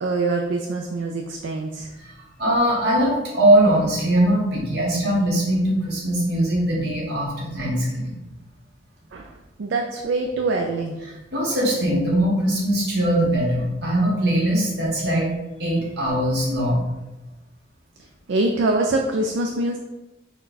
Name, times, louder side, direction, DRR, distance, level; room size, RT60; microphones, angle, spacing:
voice 1, 0.0-1.9 9.1-9.3 9.6-11.0 18.3-19.8, right 2 dB, 75° right, 2 dB, 0.4 m, -24 dB
voice 2, 2.4-8.2 11.0-15.3 15.6-16.8, right 1 dB, 60° right, -4 dB, 1.3 m, -21 dB
4.3 x 2.2 x 4.0 m, 1.0 s
head